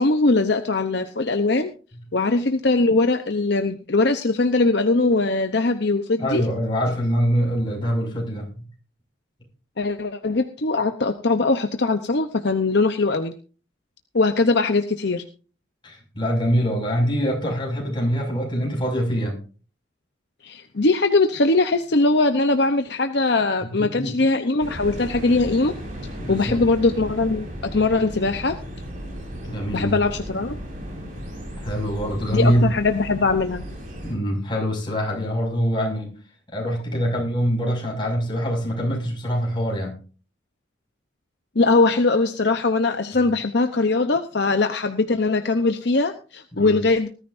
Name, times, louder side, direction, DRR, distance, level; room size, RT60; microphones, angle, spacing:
voice 1, 0.0-1.7 2.1-6.4 9.8-13.3 14.1-15.2 20.4-25.7 26.3-28.6 29.7-30.6 32.3-33.6 41.5-47.1, left 3 dB, 55° left, 7 dB, 0.8 m, -21 dB
voice 2, 6.2-8.6 15.8-19.4 23.7-24.2 26.2-26.6 29.4-29.9 31.6-32.6 34.0-36.1 36.5-39.9 46.5-46.8, equal, 25° left, -1 dB, 6.1 m, -24 dB
sound 1, 24.6-34.2, equal, 40° right, 5.4 m, -35 dB
19.5 x 13.5 x 2.6 m, 0.37 s
head